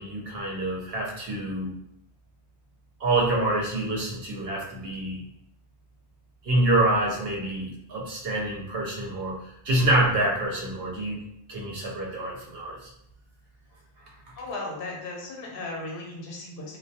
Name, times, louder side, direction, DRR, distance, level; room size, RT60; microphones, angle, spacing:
voice 1, 0.0-1.8 3.0-5.2 6.4-11.2 11.5-12.9, right 1 dB, 65° right, -3 dB, 0.9 m, -26 dB
voice 2, 14.3-16.8, left 2 dB, 60° left, -1 dB, 0.8 m, -36 dB
2.2 x 2.2 x 2.7 m, 0.74 s
omnidirectional pair, 1.1 m